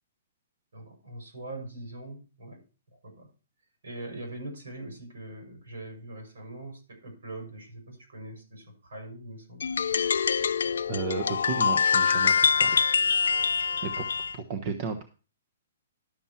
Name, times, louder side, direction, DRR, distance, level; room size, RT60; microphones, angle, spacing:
voice 1, 0.7-2.6 2.9-3.3 3.8-9.7, right 1 dB, 80° right, 2 dB, 6.3 m, -42 dB
sound 1, 9.6-14.4, left 6 dB, 80° left, 0.5 m, -25 dB
voice 2, 10.9-12.8 13.1-13.3 13.8-14.1 14.3-15.0, right 5 dB, 40° right, 9 dB, 1.1 m, -33 dB
11.5 x 7.1 x 4.4 m, 0.35 s
hypercardioid pair, 150°, 0 cm